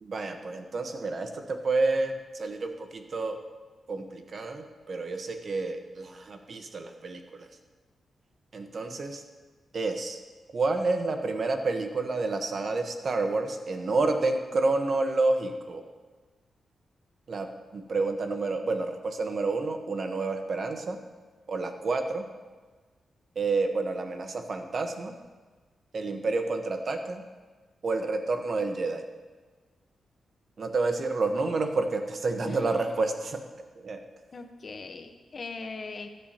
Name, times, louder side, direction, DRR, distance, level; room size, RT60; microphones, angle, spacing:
voice 1, 0.0-3.4 3.9-7.5 8.5-9.2 9.7-10.2 10.5-15.8 17.3-21.0 21.5-22.3 23.3-25.2 25.9-27.2 27.8-29.1 30.6-33.4 33.7-34.0, right 3 dB, 55° right, 6 dB, 1.1 m, -29 dB
voice 2, 32.4-32.9 34.3-36.1, left 4 dB, 50° left, 6 dB, 1.1 m, -40 dB
15.5 x 10.0 x 2.9 m, 1.4 s
cardioid pair, 80°, 0 cm